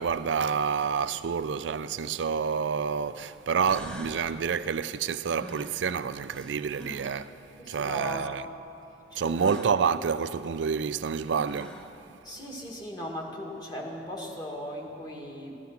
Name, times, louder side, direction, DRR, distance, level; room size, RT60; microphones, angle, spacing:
voice 1, 0.0-7.4 7.7-8.4 9.2-11.8, right 6 dB, 80° right, 0.4 m, -28 dB
sound 1, 3.2-3.3 3.6-4.3 5.3-7.3 9.3-9.8 11.0-11.1 11.3-12.0, equal, 5° left, 0.8 m, -44 dB
voice 2, 7.6-8.3 9.1-9.4 12.2-15.6, equal, 25° left, 1.9 m, -38 dB
14.5 x 13.0 x 5.8 m
head